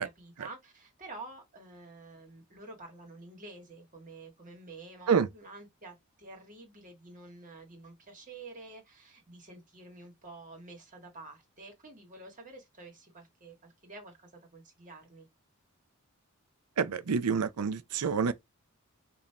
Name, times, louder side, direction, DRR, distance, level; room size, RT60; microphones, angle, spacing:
voice 1, 0.0-15.3, right 2 dB, 35° right, 1.7 m, -49 dB
voice 2, 16.8-18.3, right 6 dB, 90° right, 0.5 m, -28 dB
5.1 x 2.7 x 2.8 m
head